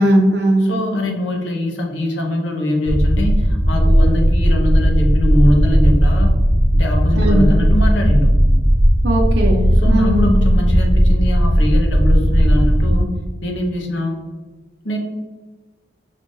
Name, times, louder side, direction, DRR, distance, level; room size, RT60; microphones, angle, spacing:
voice 1, 0.0-0.7 7.1-7.5 9.0-10.4, right 1 dB, 60° right, -1 dB, 0.6 m, -17 dB
voice 2, 0.6-6.3 6.7-8.3 9.8-13.1 13.4-14.2 14.8-15.0, left 1 dB, 75° left, 2 dB, 0.9 m, -22 dB
sound 1, 2.9-13.0, equal, 25° left, 1.0 m, -15 dB
5.4 x 2.6 x 3.8 m, 1.3 s
head